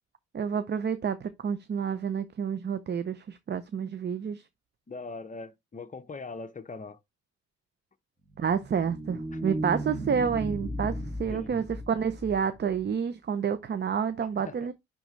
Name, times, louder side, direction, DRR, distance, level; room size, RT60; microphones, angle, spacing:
voice 1, 0.3-4.4 8.4-14.7, right 7 dB, 35° right, 0.7 m, -29 dB
voice 2, 4.9-7.0 9.3-9.5 11.3-11.5 14.4-14.7, left 3 dB, 25° left, 0.9 m, -41 dB
sound 1, 8.3-12.8, right 1 dB, 15° right, 2.6 m, -36 dB
10.0 x 3.7 x 3.2 m
cardioid pair, 90°, 30 cm